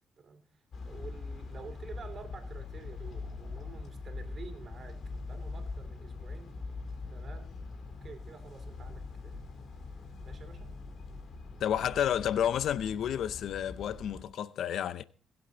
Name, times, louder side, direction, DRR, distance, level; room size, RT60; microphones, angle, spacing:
voice 1, 0.2-6.5 7.1-7.5 7.9-9.4 10.2-10.7, right 5 dB, 45° right, 3.1 m, -49 dB
sound 1, 0.7-14.2, left 3 dB, 55° left, 2.8 m, -42 dB
voice 2, 11.6-15.0, left 9 dB, 70° left, 0.6 m, -30 dB
21.5 x 8.1 x 4.0 m
cardioid pair, 90°, 0 cm